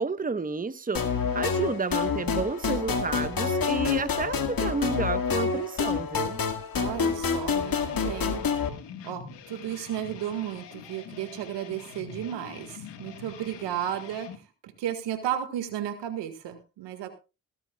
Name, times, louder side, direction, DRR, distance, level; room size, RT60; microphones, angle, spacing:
voice 1, 0.0-6.4, right 4 dB, 20° right, 1.0 m, -31 dB
sound 1, 0.9-8.7, left 6 dB, 55° left, 1.9 m, -27 dB
voice 2, 6.7-8.4 9.0-17.1, right 10 dB, 85° right, 1.8 m, -34 dB
sound 2, 7.5-14.4, left 7 dB, 80° left, 1.6 m, -45 dB
20.0 x 12.0 x 2.3 m
supercardioid pair, 45°, 42 cm